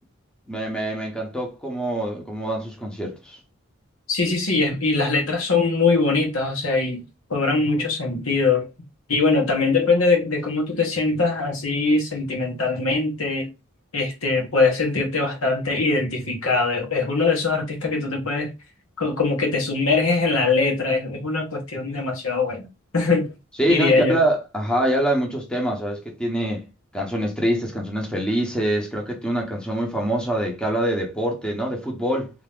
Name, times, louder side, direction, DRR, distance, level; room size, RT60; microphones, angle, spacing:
voice 1, 0.5-3.4 23.6-26.6 26.9-32.3, right 1 dB, 5° left, 0.9 m, -25 dB
voice 2, 4.1-7.0 7.3-8.7 9.1-13.5 13.9-18.5 19.0-22.7 22.9-23.3 23.7-24.2, left 3 dB, 80° left, 1.5 m, -22 dB
3.4 x 2.8 x 3.6 m
head